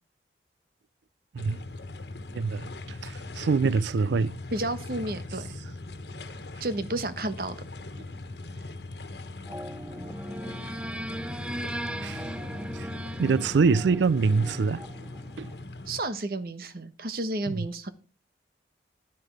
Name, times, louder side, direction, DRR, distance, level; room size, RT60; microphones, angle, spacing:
sound 1, 1.4-16.0, left 2 dB, 75° left, 1.5 m, -40 dB
voice 1, 2.3-2.7 3.0-4.3 12.0-12.2 12.7-12.9 13.2-14.8 15.4-15.5 17.5-17.7, right 4 dB, 85° right, 0.4 m, -24 dB
voice 2, 4.5-5.5 6.6-7.6 15.9-17.9, right 2 dB, 55° right, 1.1 m, -31 dB
sound 2, 9.5-15.6, equal, 5° right, 0.5 m, -38 dB
10.5 x 10.0 x 3.3 m
head